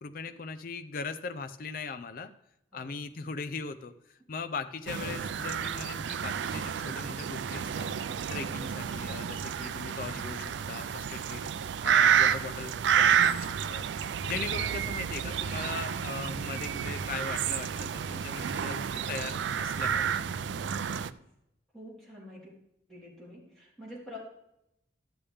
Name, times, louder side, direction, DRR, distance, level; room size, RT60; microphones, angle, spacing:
voice 1, 0.0-2.3 2.7-7.9 8.3-11.5 11.8-13.9 14.2-20.3, left 4 dB, 50° left, 9 dB, 0.4 m, -39 dB
sound 1, 4.9-21.1, right 8 dB, 75° right, 0.4 m, -30 dB
voice 2, 21.7-22.5 22.9-24.2, left 1 dB, 5° left, -8 dB, 3.8 m, -47 dB
12.5 x 7.0 x 3.4 m, 0.82 s
head